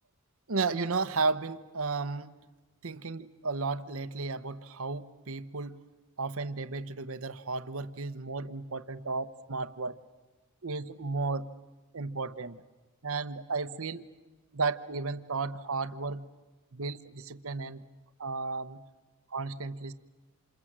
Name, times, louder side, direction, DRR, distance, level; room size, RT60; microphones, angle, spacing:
voice 1, 0.5-2.3 2.8-5.8 6.2-10.0 10.6-11.5 11.9-12.6 13.0-14.1 14.5-16.2 16.7-17.8 18.2-18.8 19.3-19.9, right 4 dB, 70° right, 12 dB, 1.0 m, -33 dB
28.0 x 28.0 x 7.5 m, 1.2 s
head